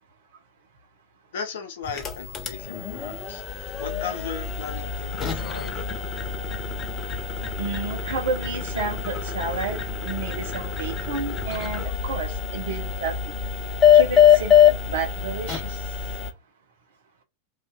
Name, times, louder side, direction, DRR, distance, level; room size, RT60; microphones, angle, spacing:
voice 1, 1.3-3.4 3.8-5.7, left 6 dB, 60° left, 0.7 m, -36 dB
sound 1, 1.8-16.3, left 8 dB, 25° left, 0.4 m, -24 dB
voice 2, 7.6-13.2 13.9-15.8, right 4 dB, 60° right, 0.8 m, -31 dB
2.6 x 2.5 x 2.2 m
figure-of-eight pair, 90°, 0 cm